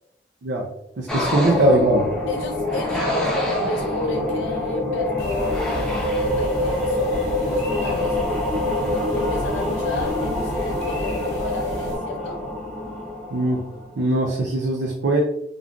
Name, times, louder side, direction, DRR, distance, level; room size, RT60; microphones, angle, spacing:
voice 1, 1.0-2.1 13.3-13.6 14.0-15.2, right 1 dB, 70° right, -1 dB, 0.4 m, -20 dB
sound 1, 1.1-14.1, left 1 dB, 5° left, 0.4 m, -25 dB
voice 2, 2.3-8.2 9.1-12.4, left 2 dB, 90° left, 1 dB, 0.4 m, -31 dB
sound 2, 5.2-12.0, equal, 20° left, 1.1 m, -34 dB
3.6 x 2.4 x 2.2 m, 0.81 s
head